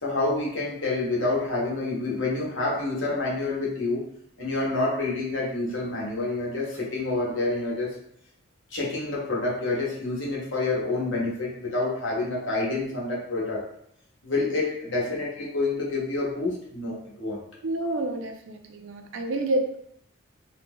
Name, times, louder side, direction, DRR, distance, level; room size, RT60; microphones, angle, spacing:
voice 1, 0.0-4.0 4.4-7.9 8.7-13.6 14.2-17.4, left 2 dB, 60° left, -4 dB, 0.9 m, -28 dB
voice 2, 17.6-19.8, right 1 dB, 65° right, 4 dB, 0.4 m, -29 dB
2.7 x 2.1 x 3.4 m, 0.69 s
head